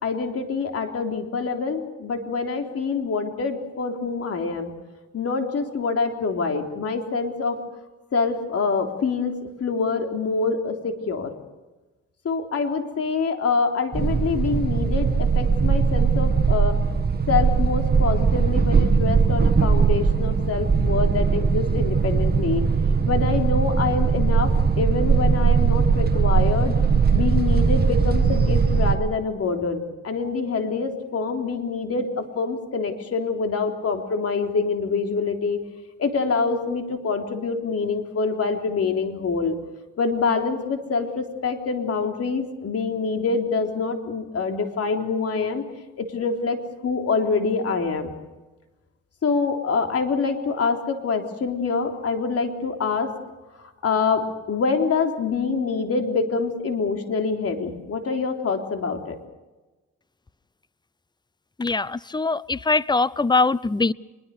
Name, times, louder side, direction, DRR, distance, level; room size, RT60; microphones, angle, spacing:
voice 1, 0.0-4.7 5.1-7.6 8.1-11.4 12.2-16.8 17.3-22.6 23.1-26.8 27.1-35.6 36.0-39.6 40.0-45.6 46.0-48.2 49.2-53.1 53.8-59.2, left 4 dB, 50° left, 3.7 m, -25 dB
sound 1, 13.9-29.0, right 5 dB, 30° right, 2.2 m, -20 dB
voice 2, 61.6-63.9, left 3 dB, 15° left, 0.7 m, -22 dB
24.5 x 22.5 x 6.7 m
cardioid pair, 90°, 30 cm